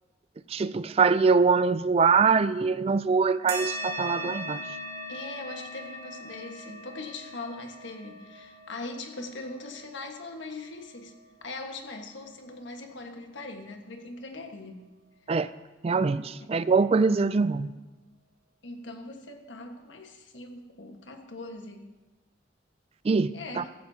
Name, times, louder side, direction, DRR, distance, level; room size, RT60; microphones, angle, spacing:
voice 1, 0.5-4.6 15.3-15.5 15.8-17.7 23.0-23.3 23.6-23.7, right 4 dB, 35° right, 15 dB, 0.3 m, -23 dB
Singing Bowl Hit, 3.5-12.4, equal, 55° right, 2.0 m, -40 dB
voice 2, 5.1-11.1 11.4-14.8 18.6-21.9 23.3-23.7, left 2 dB, 80° left, 4 dB, 1.5 m, -41 dB
15.5 x 14.5 x 2.8 m, 1.2 s
head